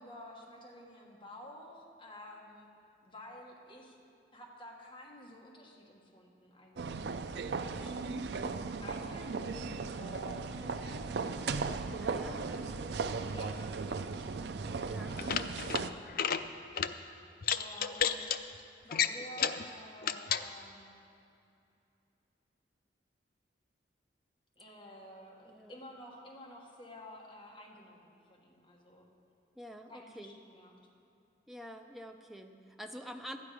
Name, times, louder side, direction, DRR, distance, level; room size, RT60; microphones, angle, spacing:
voice 1, 0.0-2.7 3.0-4.0 4.3-7.1 7.7-8.3 8.8-11.5 12.1-12.9 13.3-14.3 14.6-15.6 17.5-18.3 18.8-20.9 24.6-29.0 29.9-30.7, equal, 25° left, -1 dB, 1.4 m, -51 dB
sound 1, 6.8-15.9, right 4 dB, 65° right, 0.4 m, -37 dB
voice 2, 12.0-12.4 14.8-15.7 25.4-25.8 29.6-30.3 31.5-33.4, equal, ahead, 4 dB, 0.5 m, -47 dB
sound 2, 15.1-15.8 16.1-16.4 16.8-16.9 17.4-18.4 18.9-19.6 20.0-20.4, left 8 dB, 50° left, 0.4 m, -31 dB
12.5 x 9.6 x 4.9 m, 2.6 s
head